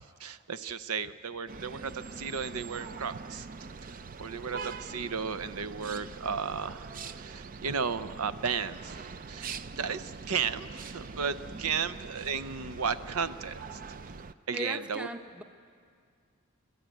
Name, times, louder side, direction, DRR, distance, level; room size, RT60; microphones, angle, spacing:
voice 1, 0.0-3.5 3.8-13.8 14.5-15.1, right 6 dB, 80° right, 14 dB, 0.7 m, -34 dB
sound 1, 1.5-14.3, right 4 dB, 40° right, 0.5 m, -43 dB
voice 2, 11.5-11.8 14.5-15.4, equal, 5° right, 7 dB, 0.8 m, -39 dB
30.0 x 13.5 x 9.2 m, 2.3 s
head